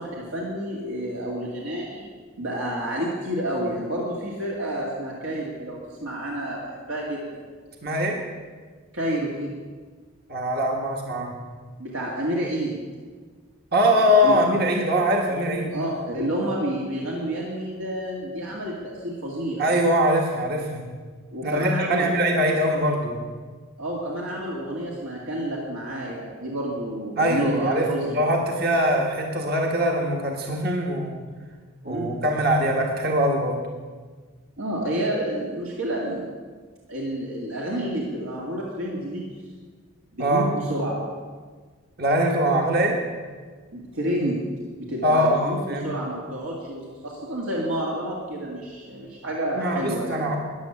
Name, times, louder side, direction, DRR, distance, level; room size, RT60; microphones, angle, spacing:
voice 1, 0.0-2.1 2.4-7.4 8.9-9.5 11.8-12.8 14.2-14.4 15.7-19.6 21.3-22.1 23.8-28.2 31.8-32.1 34.6-36.3 36.9-39.2 40.1-41.0 43.7-44.4 44.8-50.2, right 1 dB, 80° right, -3 dB, 2.4 m, -29 dB
voice 2, 7.8-8.2 10.3-11.3 13.7-15.7 19.6-20.9 21.4-23.2 27.2-31.2 31.8-33.6 40.2-40.5 42.0-43.0 45.0-45.9 49.5-50.4, equal, 45° right, 1 dB, 1.6 m, -22 dB
14.0 x 10.0 x 7.2 m, 1.5 s
head